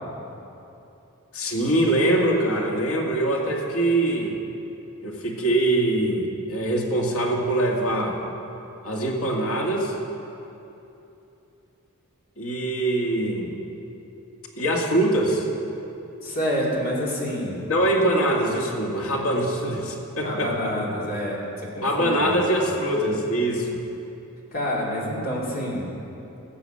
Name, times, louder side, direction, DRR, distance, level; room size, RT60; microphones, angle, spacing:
voice 1, 1.3-4.4 5.0-8.2 8.8-9.9 12.4-13.5 14.6-15.5 17.7-20.7 21.8-23.8, right 1 dB, 75° left, -1 dB, 2.0 m, -23 dB
voice 2, 16.2-17.6 20.2-21.4 21.8-22.4 24.5-25.9, equal, 40° left, -4 dB, 2.8 m, -28 dB
16.5 x 7.2 x 7.7 m, 2.9 s
head